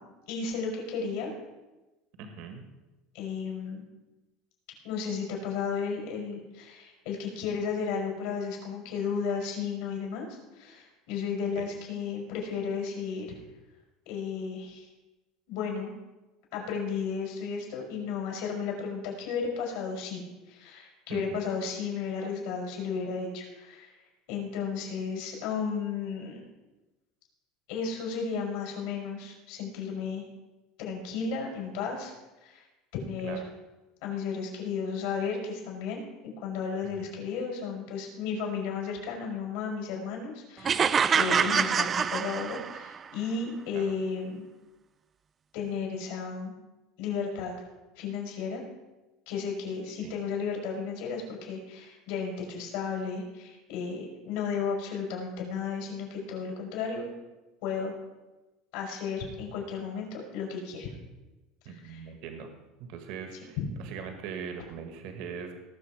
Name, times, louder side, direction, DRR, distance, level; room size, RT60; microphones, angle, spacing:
voice 1, 0.3-1.3 3.1-3.8 4.8-13.4 14.0-14.9 15.5-15.9 16.5-23.9 24.3-26.4 27.7-30.2 30.8-32.1 32.4-32.7 32.9-33.5 34.0-44.4 45.5-46.5 47.0-47.5 48.0-48.6 49.3-57.1 57.6-57.9 58.7-60.9 61.6-62.1 63.6-63.7, left 5 dB, 75° left, 0 dB, 4.9 m, -34 dB
voice 2, 2.2-2.6 11.6-11.7 21.1-21.4 33.2-33.4 36.8-37.1 41.4-41.5 43.7-43.8 50.0-50.1 61.7-62.5 62.8-65.5, right 6 dB, 65° right, 6 dB, 1.7 m, -41 dB
sound 1, 40.6-43.0, right 7 dB, 25° right, 0.4 m, -25 dB
19.0 x 6.9 x 4.9 m, 1.1 s
supercardioid pair, 140°, 0 cm